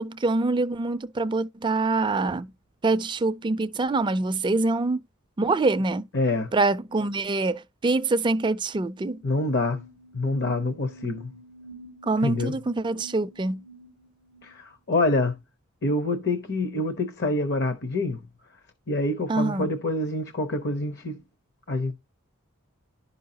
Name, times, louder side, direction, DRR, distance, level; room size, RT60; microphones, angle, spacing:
voice 1, 0.0-2.5 2.8-5.0 5.4-6.1 6.5-9.2 12.0-13.6 19.3-19.7, right 3 dB, 20° right, 0.4 m, -25 dB
voice 2, 6.1-6.5 9.2-9.8 10.1-11.3 12.2-12.5 14.4-15.4 15.8-18.2 18.9-21.2 21.7-21.9, left 2 dB, 50° left, 0.9 m, -26 dB
sound 1, 8.8-14.6, right 2 dB, 90° left, 2.4 m, -48 dB
11.5 x 5.5 x 2.8 m
head